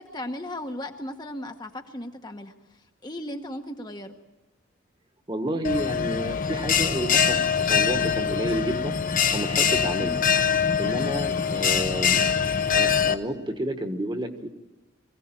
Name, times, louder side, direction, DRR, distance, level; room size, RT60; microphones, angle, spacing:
voice 1, 0.0-2.5 3.0-4.1 10.0-10.2, left 1 dB, 20° left, 5 dB, 1.1 m, -36 dB
voice 2, 5.3-9.0 9.3-10.2 10.8-12.3 12.7-14.5, right 1 dB, 20° right, 7 dB, 1.4 m, -30 dB
Bell, 5.6-13.1, left 7 dB, 40° left, 0.9 m, -23 dB
23.0 x 16.5 x 8.9 m, 1.1 s
head